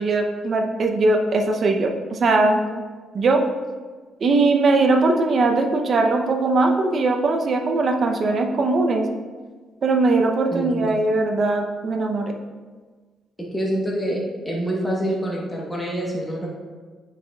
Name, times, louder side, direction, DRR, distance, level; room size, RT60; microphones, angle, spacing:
voice 1, 0.0-2.6 3.1-3.4 4.2-9.1 9.8-12.3, right 3 dB, 50° right, 4 dB, 0.6 m, -20 dB
voice 2, 10.5-10.9 13.4-14.2 14.4-16.5, right 1 dB, 10° left, -3 dB, 1.1 m, -26 dB
9.0 x 4.8 x 2.3 m, 1.4 s
cardioid pair, 90°, 0 cm